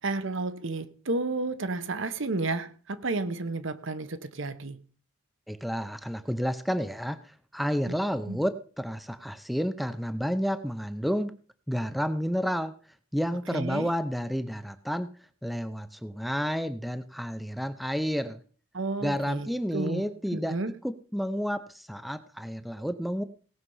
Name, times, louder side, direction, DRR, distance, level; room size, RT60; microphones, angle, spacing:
voice 1, 0.0-4.8 7.9-8.0 8.3-8.4 13.5-13.9 18.7-20.0 20.3-20.7, right 3 dB, 60° right, 12 dB, 1.0 m, -32 dB
voice 2, 5.5-7.2 7.5-11.3 11.7-12.7 13.1-15.1 15.4-18.4 19.0-20.6 20.8-23.2, equal, ahead, 12 dB, 0.5 m, -30 dB
17.5 x 6.7 x 5.5 m, 0.43 s
head